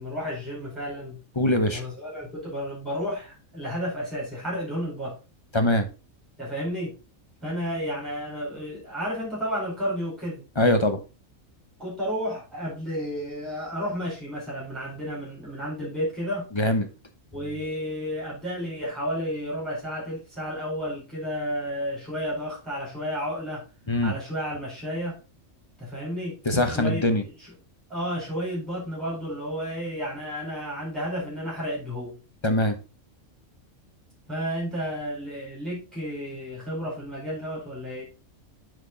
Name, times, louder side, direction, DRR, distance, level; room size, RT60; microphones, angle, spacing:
voice 1, 0.0-1.2 1.7-5.2 6.4-7.0 7.4-10.4 11.8-16.5 17.3-23.6 24.0-25.2 25.8-26.4 26.7-27.6 27.9-32.2 34.3-38.0, equal, ahead, -5 dB, 4.3 m, -32 dB
voice 2, 1.4-1.8 5.5-5.9 10.6-11.0 16.6-16.9 23.9-24.1 26.5-27.2 32.4-32.8, left 1 dB, 25° left, 7 dB, 1.0 m, -22 dB
8.4 x 5.0 x 3.9 m, 0.31 s
omnidirectional pair, 1.4 m